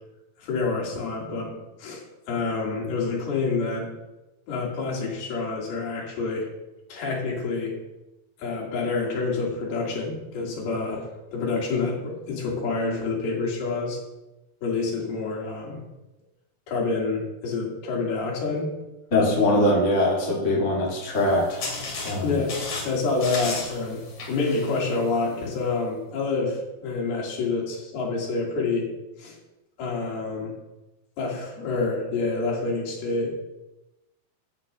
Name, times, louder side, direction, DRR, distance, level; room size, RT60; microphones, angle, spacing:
voice 1, 0.4-3.9 4.5-6.5 6.9-7.8 8.4-14.0 14.6-15.8 16.7-18.7 22.2-28.9 29.2-29.4 29.8-30.6 31.2-33.3, left 3 dB, 85° left, -3 dB, 4.2 m, -28 dB
voice 2, 19.1-21.7 22.0-22.4, left 1 dB, 20° left, -5 dB, 2.4 m, -22 dB
sound 1, 21.1-25.5, left 3 dB, 55° left, 3.8 m, -35 dB
14.5 x 10.5 x 2.5 m, 0.99 s
omnidirectional pair, 4.4 m